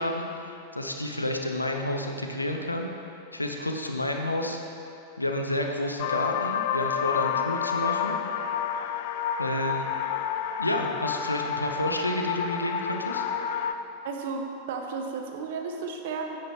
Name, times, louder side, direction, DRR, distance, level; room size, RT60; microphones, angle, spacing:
voice 1, 0.0-2.9 3.3-4.8 5.2-8.2 9.4-9.8 10.6-13.3, left 1 dB, 85° left, 3 dB, 0.7 m, -30 dB
sound 1, 6.0-13.7, left 8 dB, 50° left, 0.4 m, -29 dB
voice 2, 14.0-16.4, right 4 dB, 55° right, 3 dB, 0.8 m, -34 dB
9.4 x 9.2 x 3.1 m, 2.8 s
figure-of-eight pair, 90°, 0 cm